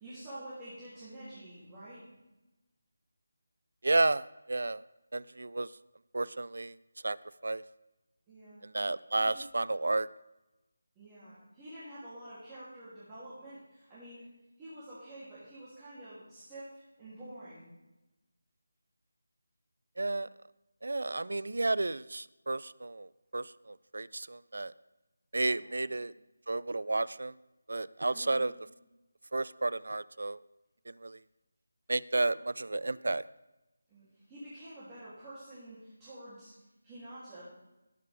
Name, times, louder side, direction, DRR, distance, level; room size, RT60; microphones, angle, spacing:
voice 1, 0.0-2.0 8.3-8.6 9.1-9.4 10.9-17.7 25.4-26.0 28.1-28.5 33.9-36.6 36.8-37.4, right 1 dB, 10° right, -13 dB, 3.0 m, -48 dB
voice 2, 3.8-4.8 5.1-5.7 6.1-6.8 7.0-7.2 7.4-7.6 8.7-10.1 20.0-20.3 20.8-24.7 25.3-26.1 26.5-27.3 27.7-28.5 29.3-30.4 30.9-31.2 31.9-33.2, right 2 dB, 75° right, 19 dB, 0.4 m, -32 dB
18.0 x 6.9 x 3.5 m, 1.0 s
figure-of-eight pair, 170°, 0 cm